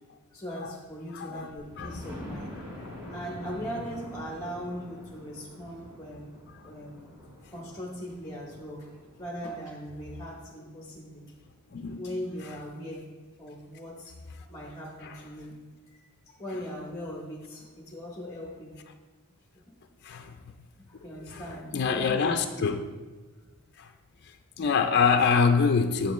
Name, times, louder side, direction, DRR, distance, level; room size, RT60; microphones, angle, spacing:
voice 1, 0.3-2.5 3.1-6.4 6.6-7.1 7.5-8.9 9.2-11.3 12.0-13.0 13.4-15.6 15.9-18.7 20.9-22.8, equal, 15° left, 0.9 m, -39 dB
voice 2, 1.1-1.5 1.8-2.0 2.8-2.9 11.7-12.2 15.0-15.2 20.0-20.4 21.2-21.4 21.7-22.8 23.8-23.9 24.2-26.1, left 5 dB, 50° left, 0.4 m, -26 dB
Thunder, 1.6-11.3 11.9-12.0 12.4-12.5 12.7-12.8, left 1 dB, 25° right, 2.3 m, -46 dB
9.2 x 7.1 x 3.1 m
head